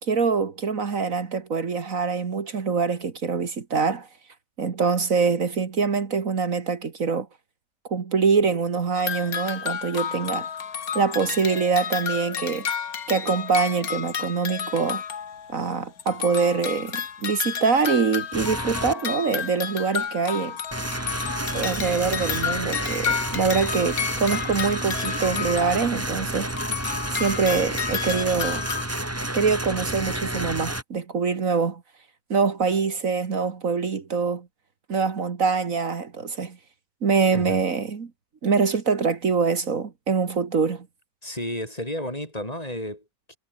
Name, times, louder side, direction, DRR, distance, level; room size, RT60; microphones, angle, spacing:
voice 1, 0.0-4.1 4.6-7.3 7.9-10.5 10.9-12.7 13.1-15.0 15.5-20.6 21.5-26.5 27.1-28.7 29.3-31.8 32.3-34.5 34.9-36.6 37.0-38.1 38.4-40.9, right 5 dB, 65° right, 2.2 m, -24 dB
sound 1, 9.0-15.7 16.0-26.2 26.5-28.9, left 7 dB, 80° left, 1.9 m, -31 dB
sound 2, 18.3-18.9 20.7-30.8, right 1 dB, 10° right, 2.1 m, -30 dB
voice 2, 41.2-43.4, left 1 dB, 25° left, 7.0 m, -32 dB
omnidirectional pair, 1.5 m